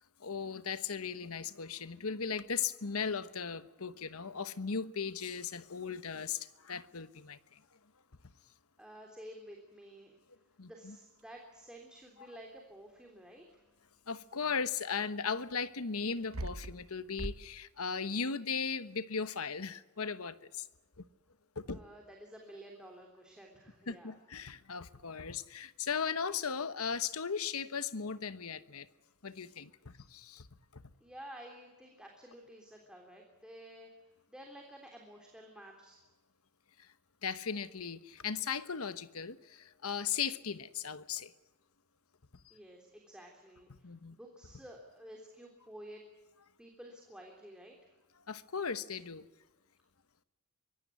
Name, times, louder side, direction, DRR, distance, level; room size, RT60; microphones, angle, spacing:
voice 1, 0.2-7.6 10.6-11.0 14.1-20.7 21.6-21.8 23.9-28.9 29.2-30.4 30.7-30.8 37.2-41.3 43.8-44.2 48.3-49.3, left 6 dB, 80° left, 1.1 m, -37 dB
voice 2, 8.8-10.2 10.6-13.4 21.7-24.2 31.0-36.0 42.5-46.0 46.6-47.8, equal, 5° right, 3.5 m, -52 dB
sound 1, 14.8-14.9 16.1-16.9 17.2-17.4, right 1 dB, 70° right, 1.2 m, -40 dB
24.5 x 18.0 x 9.6 m
head